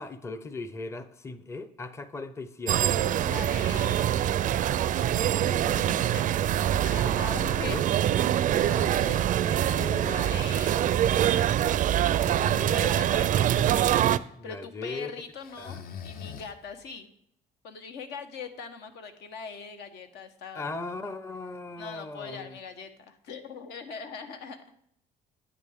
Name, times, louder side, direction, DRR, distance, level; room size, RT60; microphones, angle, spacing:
voice 1, 0.0-2.9 3.6-3.9 7.0-7.8 9.4-10.2 14.4-15.1 15.6-15.8 20.5-22.6, left 3 dB, 15° left, 12 dB, 0.6 m, -38 dB
sound 1, 2.7-14.2, right 11 dB, 50° right, 0.4 m, -24 dB
voice 2, 3.2-4.8 5.4-6.3 6.6-7.8 8.9-11.5 12.7-13.8 14.2-17.1 17.6-20.7 20.9-21.1 21.8-24.6, left 5 dB, 80° left, 7 dB, 1.1 m, -42 dB
Breathing, 8.4-9.3 12.0-13.0 15.4-16.8, left 7 dB, 60° left, 0.7 m, -42 dB
9.8 x 8.9 x 3.6 m, 0.70 s
cardioid pair, 110°, 17 cm